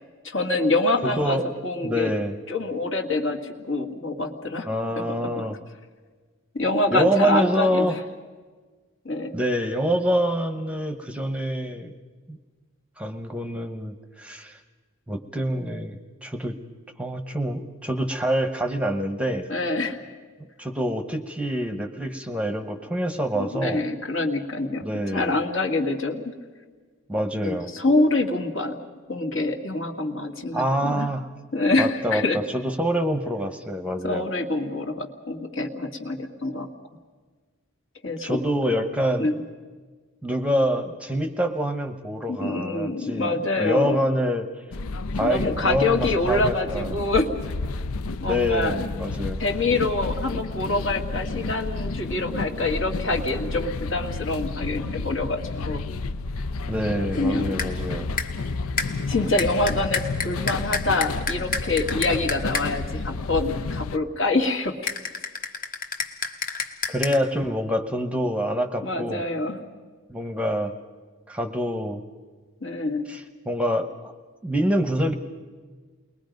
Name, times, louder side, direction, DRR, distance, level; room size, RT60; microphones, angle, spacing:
voice 1, 0.2-2.1 2.5-4.7 5.0-5.4 6.5-8.0 9.0-9.3 19.5-20.1 23.3-26.3 27.4-28.8 29.1-31.1 31.5-32.4 34.0-36.7 38.0-38.4 39.2-39.3 42.3-44.0 45.2-47.3 48.2-48.7 49.4-55.9 57.2-57.6 59.1-64.9 68.8-69.6 72.6-73.1, left 2 dB, 60° left, 2 dB, 2.1 m, -26 dB
voice 2, 1.0-1.5 1.8-2.3 4.6-5.6 6.9-8.0 9.3-11.9 12.3-12.4 13.0-14.6 15.1-16.6 17.0-19.5 20.6-23.8 24.8-25.4 27.1-27.7 30.5-31.3 31.8-34.3 38.2-39.3 40.2-44.5 45.2-46.9 48.2-49.4 56.7-58.1 66.9-69.2 70.1-70.7 71.3-72.0 73.1-74.1 74.4-75.1, equal, 5° right, 7 dB, 0.9 m, -26 dB
sound 1, 44.7-64.0, left 3 dB, 85° left, 0.6 m, -31 dB
sound 2, 57.1-57.3 57.6-57.8 58.2-58.5 58.8-62.9 64.9-67.2, left 4 dB, 40° left, 1.4 m, -31 dB
29.0 x 21.5 x 5.3 m, 1.5 s
head